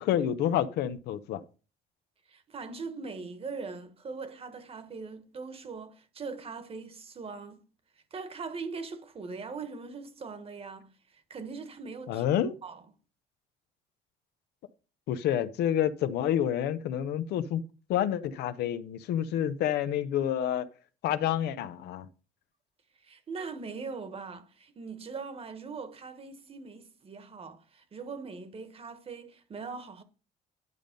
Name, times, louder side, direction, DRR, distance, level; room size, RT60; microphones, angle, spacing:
voice 1, 0.0-1.4 12.1-12.6 15.1-17.6 17.9-20.7 21.0-22.1, left 10 dB, 75° left, 0.8 m, -28 dB
voice 2, 2.3-7.6 8.1-12.2 12.6-12.8 23.0-30.0, right 4 dB, 35° right, 1.3 m, -41 dB
11.0 x 5.3 x 5.2 m
cardioid pair, 110°, 17 cm